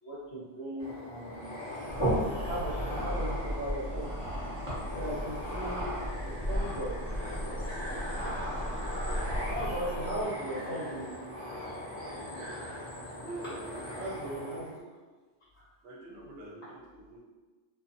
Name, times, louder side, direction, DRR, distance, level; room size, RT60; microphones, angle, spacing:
voice 1, 0.0-1.5 1.7-2.1 2.5-4.1 4.9-5.9 6.2-8.0 9.5-11.1 14.0-14.7 15.5-15.7, right 1 dB, 65° left, -10 dB, 1.1 m, -38 dB
sound 1, 0.8-14.7, equal, 25° left, 0.8 m, -38 dB
sound 2, 1.9-9.8, equal, 25° right, 1.1 m, -36 dB
sound 3, 5.3-10.3, equal, 5° right, 0.7 m, -41 dB
voice 2, 13.2-14.8 15.8-17.2, right 2 dB, 60° right, -2 dB, 0.7 m, -46 dB
2.5 x 2.4 x 2.5 m, 1.3 s
omnidirectional pair, 1.3 m